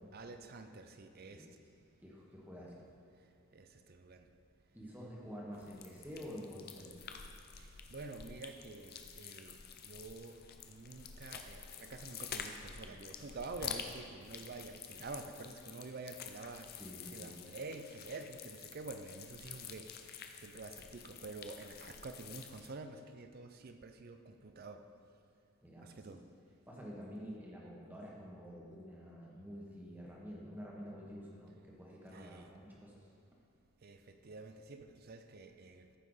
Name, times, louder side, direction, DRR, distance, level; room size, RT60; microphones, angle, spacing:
voice 1, 0.1-1.5 3.5-4.3 7.6-9.6 9.8-16.7 17.1-19.9 20.4-24.8 25.8-26.2 32.1-32.5 33.8-35.9, right 3 dB, 45° right, 8 dB, 0.5 m, -48 dB
voice 2, 2.0-2.7 4.7-6.9 16.8-17.3 25.6-26.2 26.7-33.1, equal, 10° right, -4 dB, 1.4 m, -49 dB
sound 1, 5.5-22.7, left 7 dB, 45° left, 0.5 m, -49 dB
13.5 x 5.6 x 4.1 m, 2.6 s
head